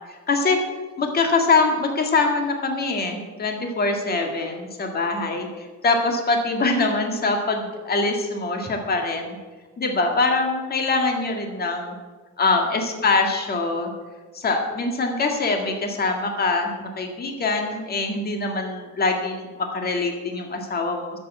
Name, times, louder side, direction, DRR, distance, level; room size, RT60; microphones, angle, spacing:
voice 1, 0.3-0.6 1.0-5.5 5.8-9.4 9.8-11.9 12.4-13.9 14.3-19.5 19.7-21.2, left 3 dB, 35° left, 3 dB, 1.9 m, -23 dB
12.5 x 7.8 x 8.1 m, 1.4 s
cardioid pair, 165°, 29 cm